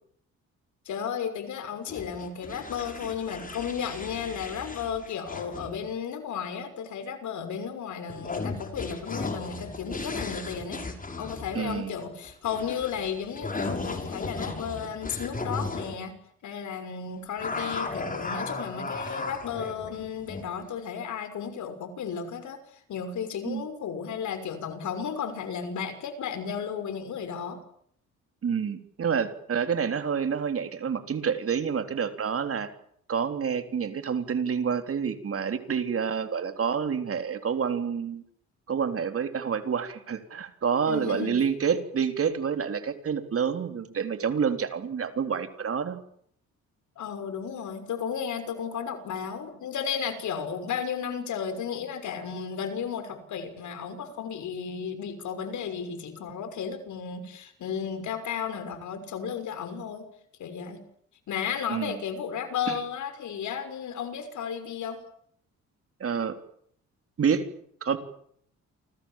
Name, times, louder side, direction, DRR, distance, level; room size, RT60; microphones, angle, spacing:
voice 1, 0.8-10.8 11.2-16.1 16.4-27.6 40.9-41.3 47.0-60.0 60.4-60.8 61.3-65.0, left 7 dB, 75° left, 10 dB, 6.2 m, -34 dB
sound 1, 1.9-5.9 8.1-16.0 17.4-20.6, left 3 dB, 25° left, 6.5 m, -36 dB
voice 2, 11.5-11.9 23.5-23.7 28.4-32.7 33.1-38.2 38.7-46.0 61.7-61.9 62.7-62.8 66.0-66.4 67.2-67.4 67.8-68.0, right 7 dB, 50° right, 8 dB, 3.8 m, -28 dB
29.0 x 25.5 x 7.5 m, 0.67 s
cardioid pair, 90°, 30 cm